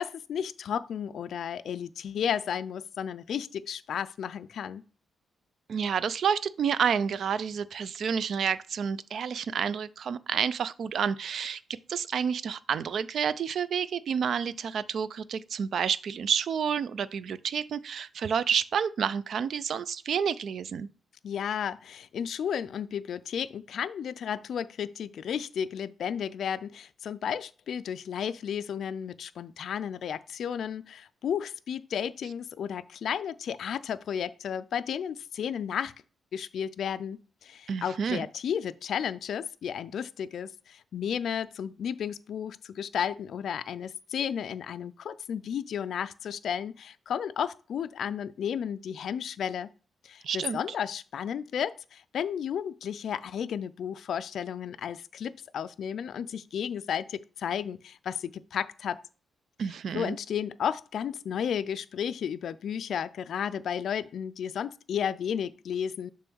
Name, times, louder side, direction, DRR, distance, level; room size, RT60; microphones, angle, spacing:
voice 1, 0.0-4.8 21.2-35.9 36.3-49.7 50.0-59.0 59.9-66.1, left 8 dB, 65° left, 0.3 m, -33 dB
voice 2, 5.7-11.6 11.9-20.9 37.7-38.3 50.2-50.6 59.6-60.2, right 7 dB, 60° right, 0.3 m, -29 dB
7.0 x 3.1 x 6.1 m
wide cardioid pair, 145°, 0 cm